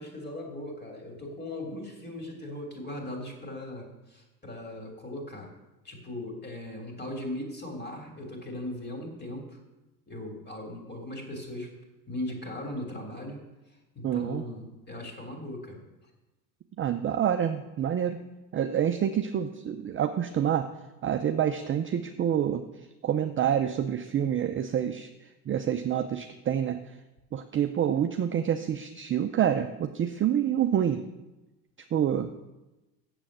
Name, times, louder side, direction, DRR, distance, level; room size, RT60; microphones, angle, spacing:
voice 1, 0.0-5.5 5.8-9.6 10.1-11.7 12.1-13.4 13.9-15.8, left 1 dB, 20° left, 1 dB, 3.2 m, -38 dB
voice 2, 14.0-14.4 16.8-18.2 18.5-20.7 21.0-22.6 23.0-25.1 25.5-26.8 27.3-31.0 31.9-32.3, right 9 dB, 25° right, 7 dB, 0.5 m, -27 dB
7.6 x 6.9 x 7.4 m, 1.0 s
hypercardioid pair, 85°, 49 cm